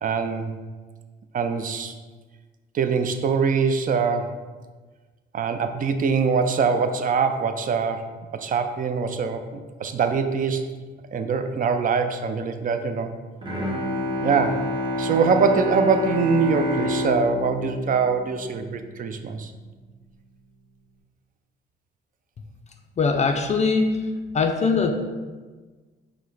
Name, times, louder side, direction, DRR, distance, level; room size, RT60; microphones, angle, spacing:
voice 1, 0.0-0.5 1.3-1.9 2.7-4.4 5.3-8.1 8.3-10.6 11.1-13.1 14.2-14.6 15.0-19.5, right 5 dB, 45° right, 7 dB, 0.4 m, -23 dB
Bowed string instrument, 13.4-19.0, left 1 dB, 25° right, 1.0 m, -28 dB
voice 2, 23.0-23.9 24.3-24.9, left 4 dB, 35° left, 4 dB, 0.4 m, -21 dB
4.7 x 2.1 x 4.0 m, 1.4 s
cardioid pair, 90°, 20 cm